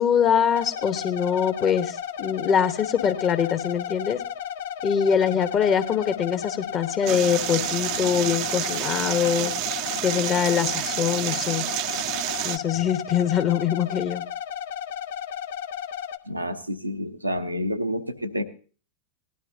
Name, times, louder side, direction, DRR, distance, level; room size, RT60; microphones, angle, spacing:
voice 1, 0.0-4.2 4.8-9.5 10.0-11.6 12.4-14.2, left 8 dB, 30° left, 11 dB, 1.1 m, -23 dB
sound 1, 0.5-16.2, left 8 dB, 55° left, 0.7 m, -34 dB
sound 2, 7.1-12.6, right 14 dB, 40° right, 0.6 m, -29 dB
voice 2, 16.3-18.4, equal, 85° right, 5 dB, 0.9 m, -29 dB
18.5 x 12.5 x 2.7 m, 0.39 s
figure-of-eight pair, 90°, 0 cm